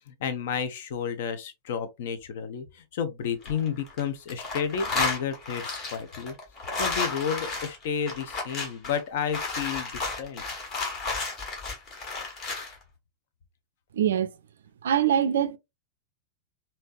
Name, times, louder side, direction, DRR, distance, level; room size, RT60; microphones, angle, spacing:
voice 1, 0.1-6.3 6.7-10.4, left 7 dB, 55° left, 0.7 m, -31 dB
sound 1, 3.2-4.0 4.3-12.7, left 3 dB, 35° left, 1.4 m, -32 dB
voice 2, 13.9-14.3 14.8-15.6, right 9 dB, 65° right, 0.4 m, -23 dB
3.2 x 2.8 x 2.5 m
figure-of-eight pair, 90°, 0 cm